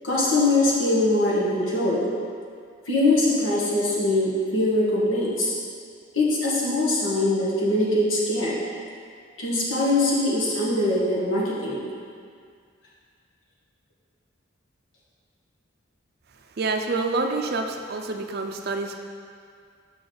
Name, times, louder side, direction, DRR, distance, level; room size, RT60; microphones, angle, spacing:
voice 1, 0.0-2.0 2.9-5.5 6.1-8.6 9.4-11.8, left 2 dB, 75° left, -6 dB, 1.7 m, -22 dB
voice 2, 16.5-19.0, right 3 dB, 50° right, 4 dB, 0.5 m, -27 dB
6.9 x 6.0 x 3.8 m, 2.2 s
head